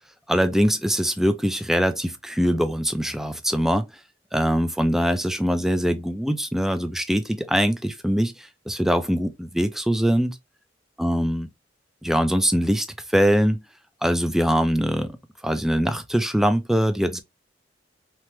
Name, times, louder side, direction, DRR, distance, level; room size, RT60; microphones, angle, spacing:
voice 1, 0.3-3.9 4.3-10.4 11.0-11.5 12.0-12.9 13.1-13.6 14.0-15.2 15.4-17.2, equal, ahead, 0.3 m, -22 dB
2.9 x 2.1 x 3.0 m
head